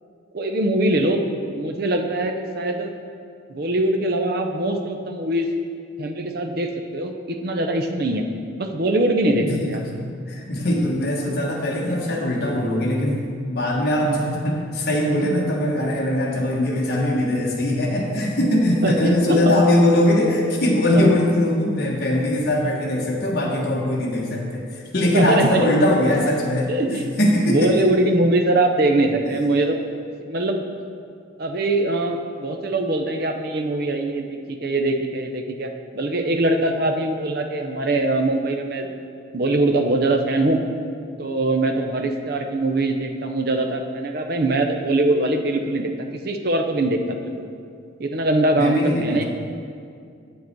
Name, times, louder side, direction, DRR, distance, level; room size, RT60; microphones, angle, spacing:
voice 1, 0.3-1.2 1.5-2.9 3.5-5.5 6.0-8.2 8.6-9.8 14.0-14.2 15.2-15.3 18.7-19.5 20.9-21.1 25.1-25.7 26.7-27.2 27.4-29.8 30.2-30.6 31.4-38.9 39.3-40.6 41.2-47.3 48.0-49.2, right 2 dB, 50° right, 4 dB, 0.6 m, -22 dB
voice 2, 9.4-9.9 10.3-26.7 27.2-27.9 48.5-49.2, left 1 dB, 50° left, -3 dB, 1.4 m, -21 dB
8.2 x 7.4 x 4.5 m, 2.3 s
head